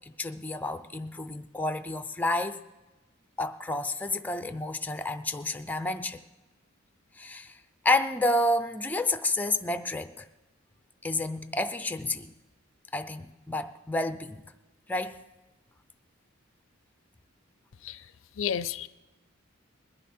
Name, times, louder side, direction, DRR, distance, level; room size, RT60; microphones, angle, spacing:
voice 1, 0.2-2.6 3.4-6.2 7.2-7.6 7.8-10.3 11.0-12.3 12.9-14.4 14.9-15.2, left 2 dB, 10° left, 0.5 m, -30 dB
voice 2, 18.4-18.9, left 8 dB, 65° left, 0.4 m, -31 dB
20.5 x 11.0 x 4.4 m
head